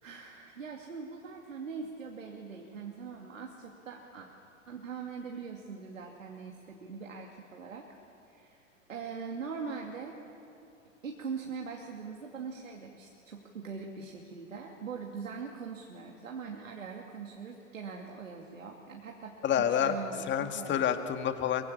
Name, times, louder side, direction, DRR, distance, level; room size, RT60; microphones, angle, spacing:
voice 1, 0.0-4.3 4.7-7.9 8.3-8.6 8.9-10.2 11.0-19.3 19.8-20.8, right 5 dB, 85° right, 0 dB, 2.6 m, -42 dB
voice 2, 19.4-20.0 20.3-21.6, left 9 dB, 30° left, 7 dB, 2.0 m, -28 dB
23.5 x 23.5 x 8.6 m, 2.8 s
hypercardioid pair, 95°, 38 cm